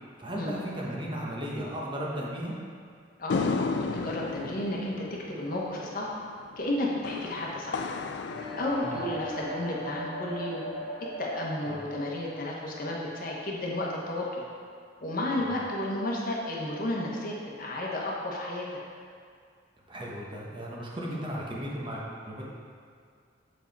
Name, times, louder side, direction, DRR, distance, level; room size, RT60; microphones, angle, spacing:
voice 1, 0.2-2.6 8.8-9.0 11.7-11.8 19.9-22.4, equal, 25° right, -4 dB, 1.0 m, -35 dB
voice 2, 3.2-6.1 6.6-7.8 8.6-10.6 11.2-14.4 15.0-18.8, left 1 dB, 50° left, -3 dB, 1.2 m, -32 dB
sound 1, 3.3-9.8, left 4 dB, 65° left, 0.3 m, -35 dB
sound 2, 8.2-14.1, equal, ahead, 1.8 m, -39 dB
7.3 x 4.8 x 4.6 m, 2.1 s
head